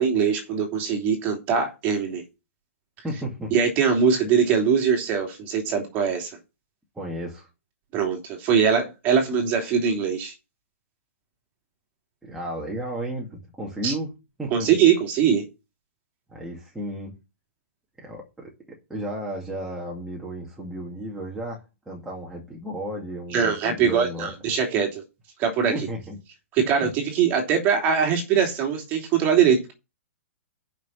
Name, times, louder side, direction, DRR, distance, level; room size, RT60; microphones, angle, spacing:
voice 1, 0.0-2.2 3.5-6.3 7.9-10.3 13.8-13.9 14.5-15.4 23.3-25.0 25.4-25.7 26.5-29.7, right 7 dB, 25° right, 3.0 m, -22 dB
voice 2, 3.0-3.5 7.0-7.5 12.2-14.1 14.4-14.7 16.3-17.1 18.0-18.5 18.9-24.3 25.7-26.2 26.8-26.9, right 1 dB, 5° right, 2.2 m, -33 dB
7.2 x 5.9 x 7.5 m
hypercardioid pair, 155°, 7 cm